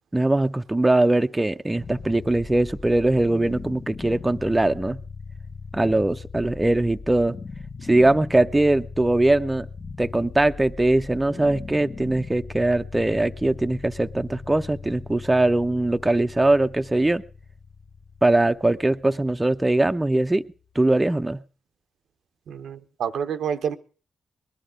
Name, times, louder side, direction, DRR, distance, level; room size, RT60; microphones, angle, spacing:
voice 1, 0.1-5.0 5.7-7.4 7.9-9.7 10.0-17.2 18.2-20.4 20.8-21.4, right 2 dB, 20° right, 0.6 m, -21 dB
sound 1, 1.7-20.8, left 4 dB, 45° left, 0.7 m, -40 dB
voice 2, 22.5-23.8, right 8 dB, 75° right, 0.7 m, -28 dB
20.0 x 11.0 x 5.0 m
supercardioid pair, 50°, 0 cm